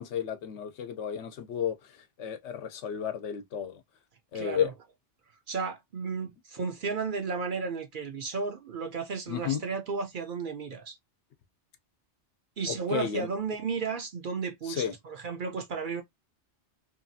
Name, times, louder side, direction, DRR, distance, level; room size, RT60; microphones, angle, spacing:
voice 1, 0.0-3.8 4.3-4.7 9.3-9.6 12.7-13.3 14.6-14.9, left 8 dB, 80° left, 0.9 m, -32 dB
voice 2, 4.3-4.7 5.5-10.9 12.6-16.0, right 5 dB, 55° right, 0.7 m, -33 dB
2.8 x 2.4 x 2.6 m
omnidirectional pair, 1.2 m